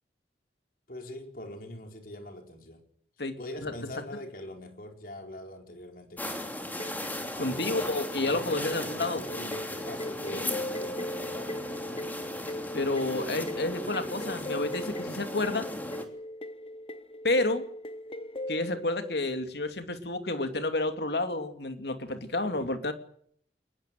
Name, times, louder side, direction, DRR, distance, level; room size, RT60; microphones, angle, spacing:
voice 1, 0.9-2.8 3.4-6.6 7.4-7.8 8.2-12.1 22.5-22.7, left 1 dB, 55° left, 4.4 m, -43 dB
voice 2, 3.2-3.7 7.4-9.2 10.3-10.6 12.7-15.7 17.2-17.7 18.5-22.9, left 2 dB, 70° left, 2.6 m, -30 dB
sound 1, 6.2-16.0, left 1 dB, 10° left, 3.0 m, -37 dB
sound 2, 6.8-19.1, left 1 dB, 30° left, 1.0 m, -39 dB
22.5 x 21.0 x 7.7 m
head